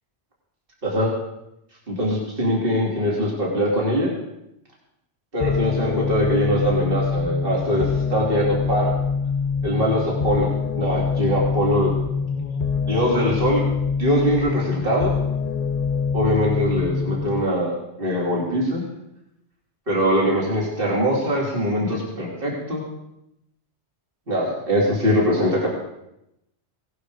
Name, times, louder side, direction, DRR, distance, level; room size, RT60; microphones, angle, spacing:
voice 1, 0.8-1.1 1.9-4.1 5.3-8.9 9.6-10.5 10.7-11.9 12.9-13.6 14.0-15.1 16.1-18.8 19.9-22.8 24.3-25.7, equal, 50° right, -3 dB, 3.4 m, -22 dB
sound 1, 5.4-17.4, left 5 dB, 40° left, 0.7 m, -24 dB
18.0 x 11.5 x 5.1 m, 0.84 s
omnidirectional pair, 1.2 m